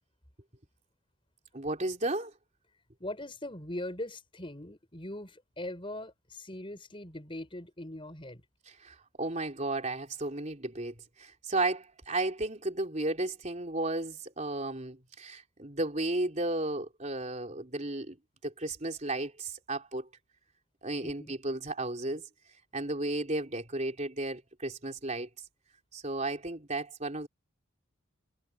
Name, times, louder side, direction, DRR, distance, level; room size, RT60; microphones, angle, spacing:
voice 1, 1.5-2.3 8.7-18.2 18.4-20.1 20.8-22.3 22.7-25.3 25.9-27.3, right 2 dB, 35° right, 3.8 m, -34 dB
voice 2, 3.0-8.4 21.0-21.3, left 1 dB, 25° left, 5.3 m, -41 dB
head